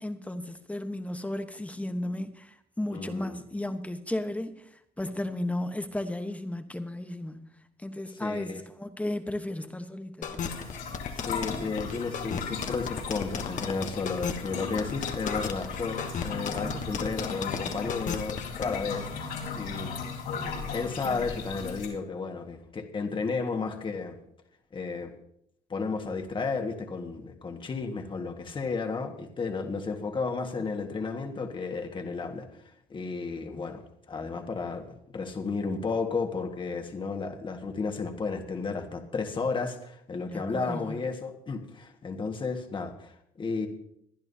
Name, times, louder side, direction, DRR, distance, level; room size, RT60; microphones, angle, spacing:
voice 1, 0.0-4.6 5.0-7.5 7.8-10.6 33.4-33.6 40.3-41.0, left 1 dB, 10° left, 1.0 m, -34 dB
voice 2, 2.9-3.4 8.2-8.6 11.2-19.1 19.6-19.9 20.7-24.2 24.7-25.1 25.7-32.5 32.9-43.7, left 4 dB, 30° left, 1.6 m, -33 dB
sound 1, 10.2-18.8, left 7 dB, 50° left, 1.3 m, -34 dB
sound 2, 10.4-21.9, left 5 dB, 90° left, 4.3 m, -37 dB
22.0 x 10.5 x 2.8 m
cardioid pair, 110°, 17 cm